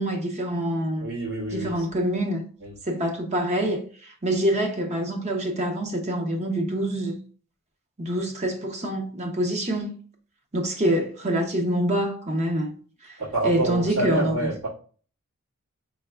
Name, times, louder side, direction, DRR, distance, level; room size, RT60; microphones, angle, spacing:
voice 1, 0.0-1.1 1.5-2.4 2.9-7.2 8.0-9.9 10.5-12.7 13.0-13.2 13.4-14.5, right 1 dB, 30° right, 0.7 m, -26 dB
voice 2, 1.0-1.9 2.6-2.7 13.2-14.7, right 2 dB, 75° right, 2.1 m, -28 dB
5.2 x 3.5 x 2.3 m
head